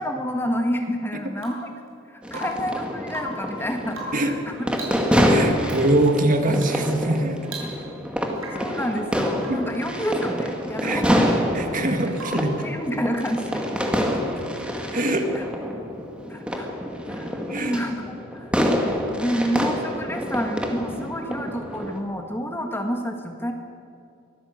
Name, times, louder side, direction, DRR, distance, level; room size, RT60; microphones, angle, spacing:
voice 1, 0.0-1.7 2.1-4.4 5.4-5.5 8.6-12.0 12.6-13.4 15.3-15.5 16.3-16.7 17.1-18.5 18.9-23.5, equal, 10° left, 3 dB, 1.8 m, -29 dB
Rain / Water tap faucet / Drip, 1.4-1.8 2.3-2.7 3.0-3.5 3.9-4.3 4.7-5.1 5.6-5.8 6.5-6.8 7.1-7.2 7.5-8.0 8.4-8.7 9.4-9.7 12.1-12.6 14.5-14.6, right 1 dB, 80° right, 6.1 m, -37 dB
sound 1, 2.2-22.0, equal, 5° right, 2.0 m, -27 dB
voice 2, 5.3-7.4 9.5-9.7 10.8-11.1 11.5-12.6 14.9-15.3 17.5-17.8, right 1 dB, 40° right, 5 dB, 1.9 m, -23 dB
24.0 x 17.0 x 8.1 m, 2.5 s
head